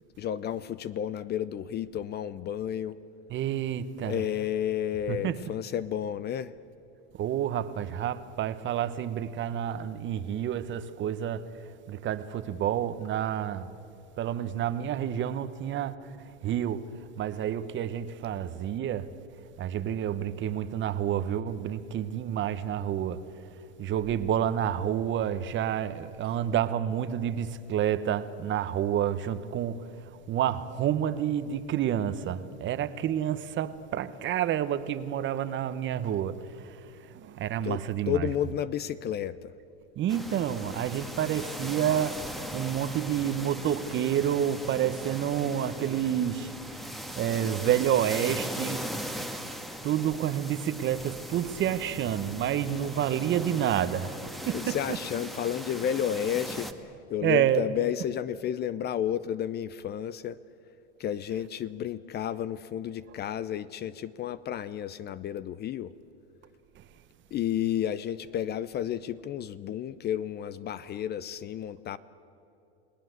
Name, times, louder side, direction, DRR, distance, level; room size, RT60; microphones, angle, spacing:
voice 1, 0.2-3.0 4.0-6.5 37.6-39.5 54.5-60.4 61.0-65.9 67.3-72.0, left 10 dB, 30° left, 0.6 m, -32 dB
voice 2, 3.3-4.2 5.1-5.4 7.2-11.5 11.9-13.7 14.2-16.2 16.4-19.1 19.6-23.2 23.8-29.9 30.3-38.3 40.0-46.5 47.2-48.9 49.8-54.2 54.4-55.0 57.2-57.7 66.8-66.9, right 10 dB, 35° right, 1.2 m, -29 dB
sound 1, 40.1-56.7, equal, ahead, 1.6 m, -39 dB
29.5 x 18.0 x 8.1 m
hypercardioid pair, 110°, 34 cm